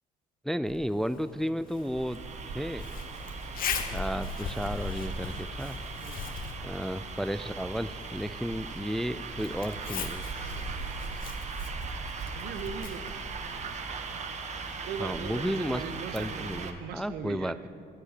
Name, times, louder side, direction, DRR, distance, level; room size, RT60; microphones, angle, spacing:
voice 1, 0.4-2.2 2.5-2.9 3.9-5.8 6.6-10.3 15.0-15.8 16.1-17.7, equal, ahead, 14 dB, 0.3 m, -33 dB
Zipper (clothing), 0.7-14.2, left 5 dB, 60° left, 1.4 m, -40 dB
sound 1, 1.6-16.7, right 4 dB, 45° right, 1.3 m, -39 dB
voice 2, 12.3-13.2 14.8-17.5, right 7 dB, 70° right, 11 dB, 1.0 m, -39 dB
21.5 x 8.0 x 6.6 m, 2.4 s
cardioid pair, 110°, 17 cm